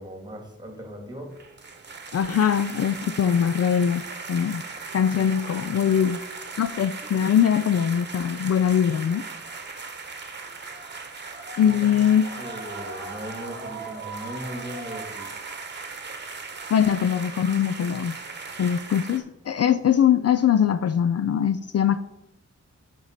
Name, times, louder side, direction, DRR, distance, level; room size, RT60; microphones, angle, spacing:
voice 1, 0.0-1.4 11.6-11.9 12.4-15.3, right 1 dB, 15° right, 2.1 m, -38 dB
sound 1, 1.3-19.2, right 4 dB, 35° right, 1.2 m, -38 dB
voice 2, 2.1-4.0 4.3-4.6 4.9-6.2 6.6-9.2 11.6-12.3 16.7-18.2 18.6-22.0, left 8 dB, 60° left, 0.4 m, -22 dB
7.2 x 5.4 x 6.5 m
wide cardioid pair, 120°, 29 cm